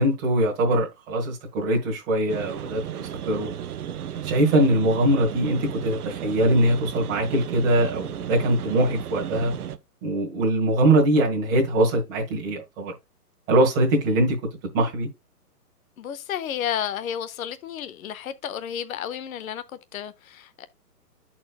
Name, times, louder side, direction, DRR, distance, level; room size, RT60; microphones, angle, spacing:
voice 1, 0.0-3.5 4.2-9.5 10.0-12.9 13.5-14.3 14.7-15.1, right 1 dB, 20° right, 1.4 m, -22 dB
sound 1, 2.3-9.8, right 9 dB, 70° right, 0.8 m, -34 dB
voice 2, 16.0-19.6 19.9-20.7, left 9 dB, 60° left, 0.7 m, -32 dB
12.0 x 4.4 x 2.3 m
hypercardioid pair, 155°, 47 cm